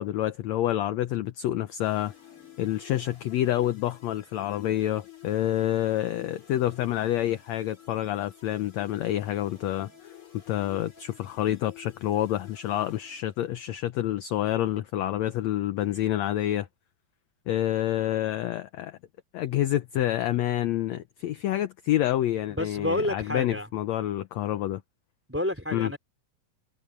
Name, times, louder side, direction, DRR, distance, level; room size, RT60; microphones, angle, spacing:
voice 1, 0.0-2.1 2.6-9.9 10.5-16.7 17.5-19.0 19.3-24.8 25.7-25.9, left 13 dB, 75° left, 1.7 m, -28 dB
sound 1, 1.8-13.7, left 10 dB, 40° left, 4.8 m, -51 dB
voice 2, 22.5-23.7 25.3-26.0, left 1 dB, 5° right, 3.3 m, -29 dB
omnidirectional pair, 3.9 m